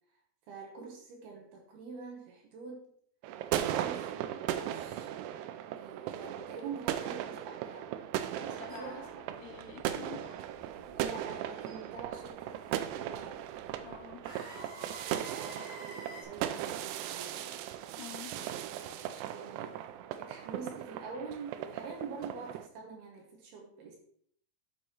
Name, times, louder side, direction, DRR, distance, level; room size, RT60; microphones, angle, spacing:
voice 1, 0.5-2.9 3.7-5.1 5.8-7.9 8.4-9.1 10.9-13.5 15.1-17.6 18.3-19.8 20.2-24.0, right 4 dB, 70° right, 1 dB, 2.7 m, -46 dB
sound 1, 3.2-22.7, right 11 dB, 90° right, 2.4 m, -38 dB
sound 2, 8.3-16.2, right 1 dB, 45° right, 2.3 m, -52 dB
voice 2, 8.4-10.4 13.8-14.3 18.0-18.4, left 8 dB, 75° left, 1 dB, 2.7 m, -48 dB
11.5 x 6.1 x 3.1 m, 0.63 s
omnidirectional pair, 5.5 m